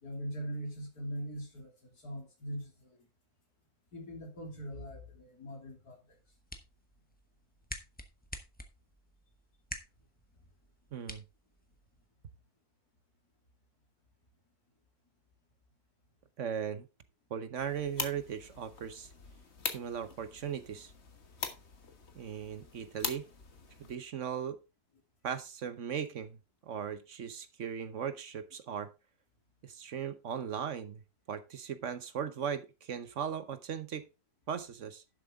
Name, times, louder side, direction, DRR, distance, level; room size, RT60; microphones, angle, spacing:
voice 1, 0.0-3.1 3.9-6.2, equal, 85° left, 3.7 m, -42 dB
sound 1, 6.1-12.1, left 1 dB, 5° left, 1.1 m, -49 dB
voice 2, 10.9-11.2 16.4-16.9 17.3-19.1 19.7-20.9 22.1-23.3 23.8-24.6 25.2-26.4 26.7-28.9 29.6-31.0 31.3-34.1 34.5-35.0, right 8 dB, 60° right, 1.1 m, -38 dB
sound 2, 17.6-24.0, left 5 dB, 45° left, 1.7 m, -43 dB
11.5 x 7.4 x 3.6 m
omnidirectional pair, 1.6 m